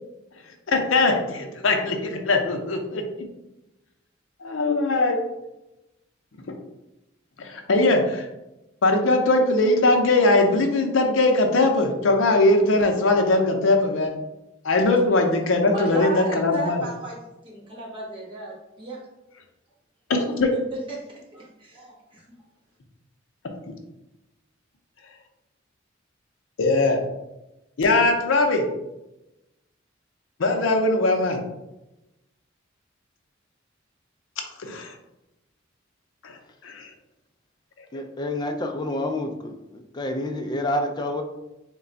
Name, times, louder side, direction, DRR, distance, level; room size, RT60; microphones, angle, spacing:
voice 1, 0.7-3.3 4.4-5.2 6.5-6.6 7.4-8.3 8.8-14.1 14.6-16.8 20.2-20.5 26.6-27.0 27.8-28.6 30.4-31.4 34.6-34.9 36.2-36.9 37.9-38.0, left 2 dB, 70° left, 4 dB, 0.6 m, -21 dB
voice 2, 15.7-17.2 17.4-19.0 20.7-22.2, right 1 dB, 25° right, -5 dB, 1.1 m, -35 dB
voice 3, 37.9-41.2, left 1 dB, 20° left, 4 dB, 0.3 m, -28 dB
3.2 x 2.2 x 3.8 m, 0.96 s
head